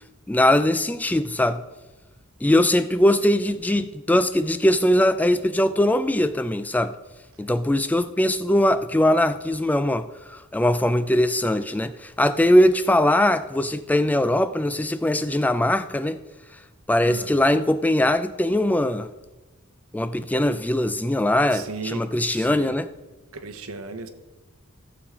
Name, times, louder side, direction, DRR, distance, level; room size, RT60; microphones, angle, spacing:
voice 1, 0.3-1.6 2.4-6.9 7.4-10.0 10.5-16.2 16.9-19.1 19.9-22.9, left 1 dB, 5° left, 12 dB, 0.3 m, -21 dB
voice 2, 21.5-22.7 23.3-24.1, right 4 dB, 80° right, 9 dB, 1.0 m, -36 dB
14.5 x 7.0 x 4.9 m, 1.1 s
head